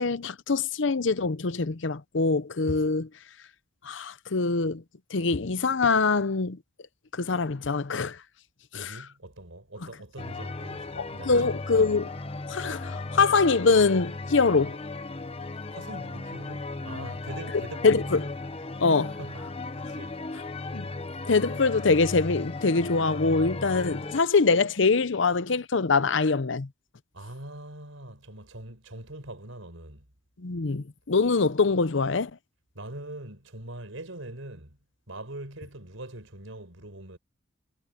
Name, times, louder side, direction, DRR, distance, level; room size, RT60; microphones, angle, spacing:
voice 1, 0.0-3.1 3.8-4.8 5.1-6.6 7.1-8.2 8.7-8.9 11.0-12.1 12.5-14.8 17.8-18.2 18.8-19.2 20.7-20.9 21.3-26.7 30.4-32.3, left 4 dB, 65° left, 0.8 m, -24 dB
voice 2, 8.7-11.8 15.7-18.1 18.9-20.2 27.1-30.1 32.7-34.8 35.1-37.2, right 1 dB, 85° right, 5.1 m, -42 dB
sound 1, 10.2-24.2, left 3 dB, 30° left, 1.0 m, -36 dB
head